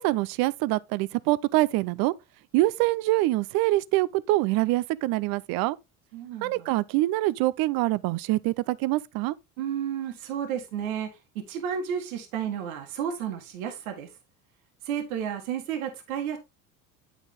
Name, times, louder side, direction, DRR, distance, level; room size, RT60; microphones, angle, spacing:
voice 1, 0.0-2.1 2.5-5.8 6.4-9.3, right 18 dB, 55° right, 0.6 m, -25 dB
voice 2, 6.1-6.7 9.6-11.1 11.3-14.1 14.8-16.4, right 8 dB, 80° right, 1.7 m, -32 dB
8.8 x 4.6 x 3.6 m
hypercardioid pair, 80°, 42 cm